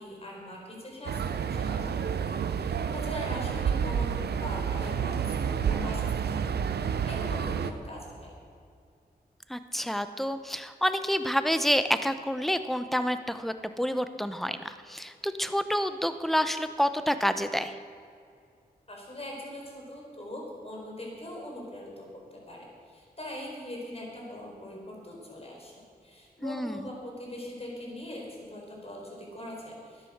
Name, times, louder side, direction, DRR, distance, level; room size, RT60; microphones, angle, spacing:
voice 1, 0.0-8.3 18.9-22.0 22.3-30.1, left 1 dB, 40° left, -2 dB, 4.2 m, -42 dB
sound 1, 1.1-7.7, right 7 dB, 90° right, 0.6 m, -29 dB
voice 2, 9.5-17.8 26.4-26.8, equal, ahead, 10 dB, 0.8 m, -28 dB
13.0 x 10.0 x 6.5 m, 2.4 s
wide cardioid pair, 75°, 16 cm